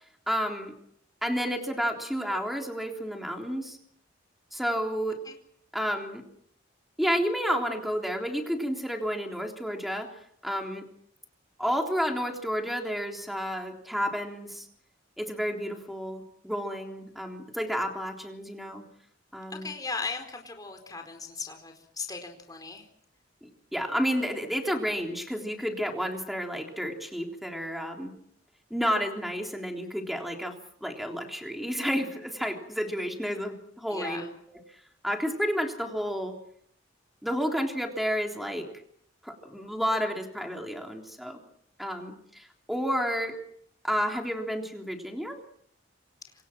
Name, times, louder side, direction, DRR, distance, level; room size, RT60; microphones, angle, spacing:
voice 1, 0.3-0.7 1.2-3.8 4.5-5.2 5.7-6.2 7.0-10.1 10.4-10.8 11.6-14.7 15.2-18.8 19.3-19.7 23.4-28.1 28.7-30.6 30.8-34.2 34.5-34.6 35.0-36.4 37.2-38.7 39.2-41.4 41.8-43.4 43.8-45.4, equal, ahead, 2 dB, 3.6 m, -31 dB
voice 2, 19.5-22.9 33.9-34.3, left 4 dB, 20° left, 4 dB, 4.4 m, -37 dB
27.0 x 26.0 x 6.2 m, 0.68 s
head